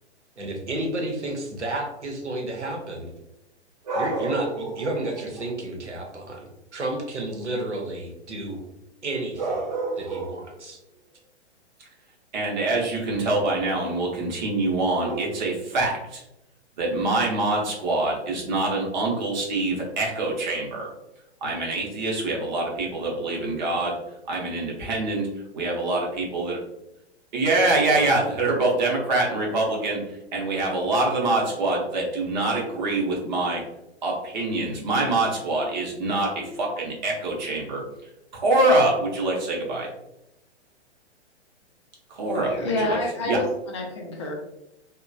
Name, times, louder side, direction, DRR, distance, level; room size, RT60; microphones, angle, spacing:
voice 1, 0.4-3.1 4.0-8.6 9.0-9.6 10.0-10.8, right 2 dB, 80° right, 1 dB, 0.8 m, -31 dB
voice 2, 3.8-4.9 9.4-10.4 12.3-16.2 16.8-20.9 21.4-24.0 24.3-25.3 25.5-26.6 27.3-33.6 34.0-37.8 38.3-39.9 42.1-43.4, right 2 dB, 40° right, -1 dB, 0.8 m, -25 dB
voice 3, 42.4-44.3, left 2 dB, 25° left, 0 dB, 0.4 m, -28 dB
3.0 x 2.2 x 2.5 m, 0.87 s
figure-of-eight pair, 115°, 34 cm